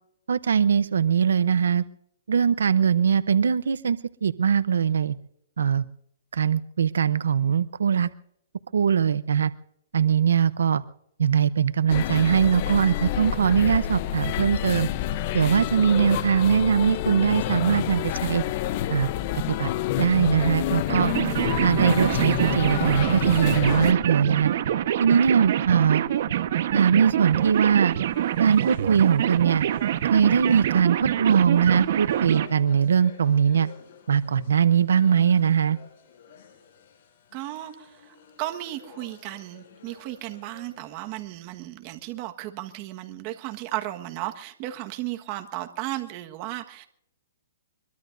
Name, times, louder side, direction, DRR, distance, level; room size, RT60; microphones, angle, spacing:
voice 1, 0.3-1.8 2.3-5.2 5.6-5.8 6.3-8.1 8.7-9.5 9.9-10.8 11.2-14.9 15.3-18.4 18.9-19.1 19.5-19.7 20.0-21.1 21.6-24.5 25.0-26.0 26.7-28.0 28.4-29.7 30.0-33.7 34.1-35.8, right 7 dB, 90° right, 16 dB, 0.7 m, -21 dB
sound 1, 11.9-23.9, left 13 dB, 35° left, 0.8 m, -28 dB
sound 2, 20.9-32.5, right 11 dB, 50° right, 1.1 m, -26 dB
sound 3, 27.2-41.3, left 7 dB, 55° left, 7.2 m, -52 dB
voice 2, 37.3-46.9, right 15 dB, 30° right, 6 dB, 1.4 m, -35 dB
24.0 x 22.5 x 2.6 m, 0.74 s
hypercardioid pair, 165°, 0 cm